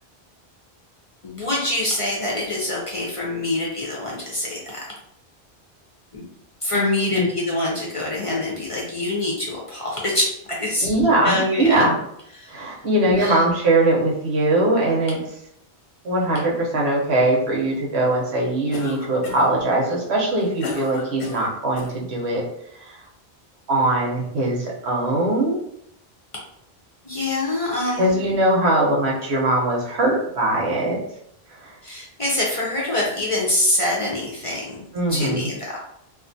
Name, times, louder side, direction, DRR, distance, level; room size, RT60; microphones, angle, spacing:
voice 1, 1.2-4.9 6.1-6.3 6.6-10.9 11.2-11.9 12.4-12.7 13.2-13.4 27.0-28.1 31.8-35.8, left 1 dB, 45° left, -4 dB, 0.5 m, -25 dB
voice 2, 6.7-7.3 10.8-11.9 12.5-15.2 16.0-22.4 22.8-23.0 23.7-25.6 28.0-31.0 31.5-31.8 34.9-35.5, right 1 dB, 90° right, -3 dB, 1.0 m, -21 dB
Cough, 18.7-19.6 20.2-22.0, left 3 dB, 90° left, 0.8 m, -34 dB
2.4 x 2.4 x 2.5 m, 0.74 s
omnidirectional pair, 1.1 m